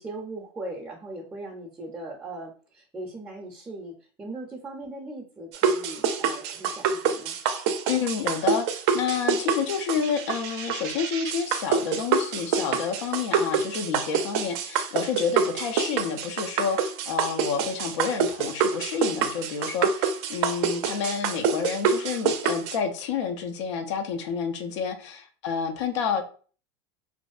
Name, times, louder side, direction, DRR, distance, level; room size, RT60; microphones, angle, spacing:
voice 1, 0.0-7.4, right 2 dB, 15° right, -2 dB, 0.5 m, -39 dB
sound 1, 5.5-22.8, right 6 dB, 70° right, 0.4 m, -26 dB
voice 2, 7.9-26.2, left 6 dB, 80° left, 6 dB, 0.4 m, -29 dB
2.5 x 2.1 x 2.3 m, 0.41 s
supercardioid pair, 110°, 15 cm